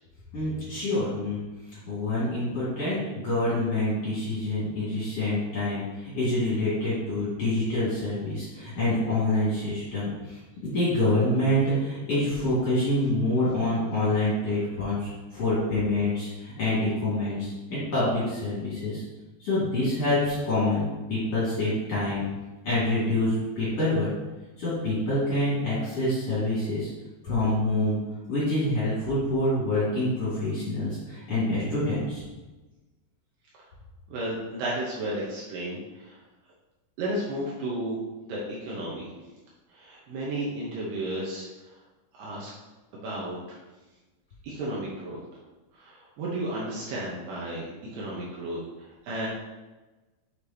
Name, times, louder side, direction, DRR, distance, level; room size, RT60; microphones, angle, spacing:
voice 1, 0.3-1.4 1.7-19.0 19.4-22.2 22.6-24.1 24.6-26.9 27.2-28.0 28.3-32.2, left 1 dB, 45° left, -10 dB, 2.6 m, -26 dB
voice 2, 34.1-36.2 37.0-38.0 38.2-39.1 39.7-41.5 42.1-42.5 43.0-43.4 44.4-45.2 45.7-48.6 49.0-49.3, right 1 dB, 75° right, -5 dB, 2.7 m, -33 dB
6.7 x 6.6 x 2.9 m, 1.2 s
omnidirectional pair, 5.4 m